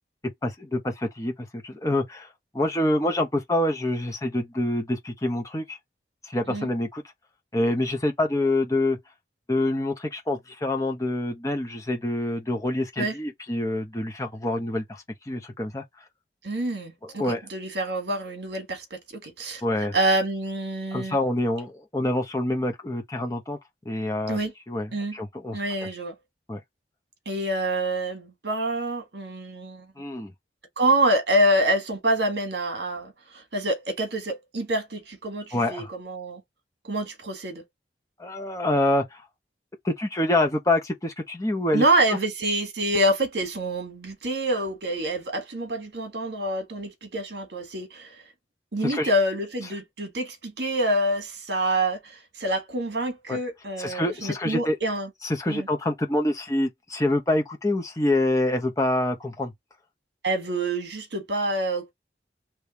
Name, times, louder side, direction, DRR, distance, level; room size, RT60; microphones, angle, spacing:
voice 1, 0.4-1.3 1.6-2.3 2.5-5.8 6.2-7.0 7.5-9.0 9.5-15.8 17.0-17.4 19.6-19.9 20.9-23.6 23.8-24.4 24.7-25.6 26.5-26.6 30.0-30.3 35.5-35.9 38.2-39.2 39.8-42.2 48.8-49.1 53.3-53.4 53.8-54.8 55.2-59.5, left 1 dB, 20° left, 0.9 m, -26 dB
voice 2, 16.4-19.6 19.9-21.2 24.3-24.5 24.9-25.2 25.5-26.1 27.2-29.9 30.8-36.4 36.8-37.6 41.7-48.1 48.7-55.1 55.5-55.7 60.2-61.9, right 1 dB, 65° right, 1.5 m, -26 dB
3.3 x 3.1 x 2.8 m
head